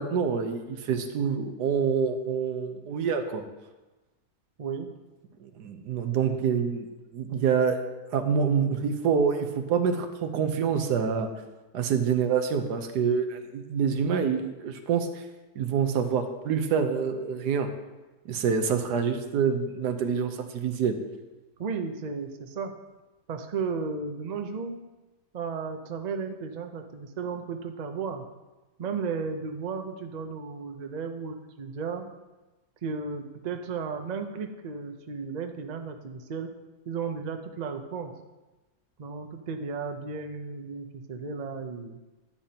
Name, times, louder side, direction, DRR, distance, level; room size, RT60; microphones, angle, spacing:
voice 1, 0.0-3.4 5.4-6.9 7.1-7.8 8.1-11.3 11.7-15.2 15.6-17.7 18.2-21.0, right 6 dB, 80° right, 7 dB, 1.4 m, -26 dB
voice 2, 4.6-4.9 21.6-22.7 23.3-24.8 25.3-28.2 28.8-32.0 32.8-36.5 36.9-38.1 39.0-42.0, right 5 dB, 55° right, 6 dB, 0.4 m, -34 dB
11.5 x 8.4 x 2.9 m, 1.1 s
omnidirectional pair, 1.7 m